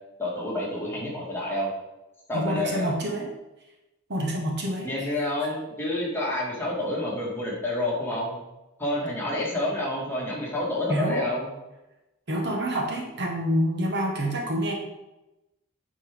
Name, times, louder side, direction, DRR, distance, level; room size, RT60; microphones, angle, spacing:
voice 1, 0.2-1.7 2.3-2.9 4.8-8.4 8.8-11.5, left 1 dB, 10° left, -5 dB, 2.0 m, -28 dB
voice 2, 2.3-3.3 4.1-4.9 10.9-11.2 12.3-14.7, equal, 55° right, 0 dB, 1.3 m, -27 dB
8.9 x 4.6 x 3.6 m, 0.97 s
head